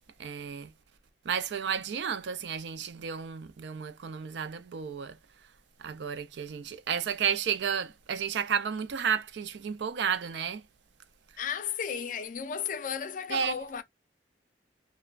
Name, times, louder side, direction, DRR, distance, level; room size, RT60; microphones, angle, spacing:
voice 1, 0.2-0.7 1.2-5.2 5.8-10.6 13.3-13.6, right 7 dB, 75° right, 0.4 m, -32 dB
voice 2, 11.4-13.8, left 7 dB, 45° left, 0.4 m, -34 dB
3.1 x 2.1 x 2.3 m
head